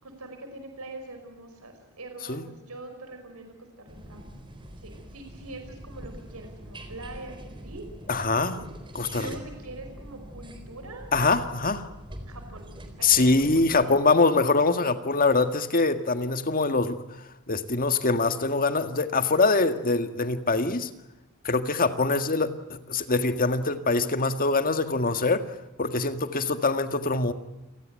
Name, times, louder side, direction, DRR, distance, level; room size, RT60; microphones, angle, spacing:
voice 1, 0.0-4.2 4.8-7.9 9.1-11.1 12.3-12.7 13.0-13.9, right 2 dB, 85° right, 5 dB, 5.3 m, -43 dB
sound 1, 3.9-13.8, equal, 25° right, 3.9 m, -43 dB
voice 2, 8.1-8.6 8.9-9.3 11.1-11.9 13.0-17.0 17.5-20.9 21.4-25.5 25.8-27.3, left 3 dB, 40° left, 9 dB, 1.9 m, -24 dB
29.0 x 19.0 x 7.7 m, 0.98 s
head